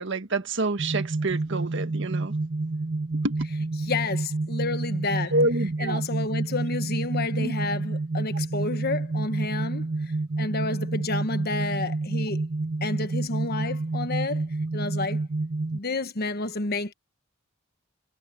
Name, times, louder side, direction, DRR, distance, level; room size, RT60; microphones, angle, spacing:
voice 1, 0.0-2.3 3.2-3.3 5.3-6.0 7.4-7.5, right 2 dB, 65° right, 1.6 m, -27 dB
sound 1, 0.8-15.8, right 2 dB, 45° right, 0.6 m, -29 dB
voice 2, 3.9-5.3 5.8-9.9 10.4-12.4 12.8-14.4 14.7-15.2 15.7-16.9, left 3 dB, 50° left, 1.4 m, -30 dB
head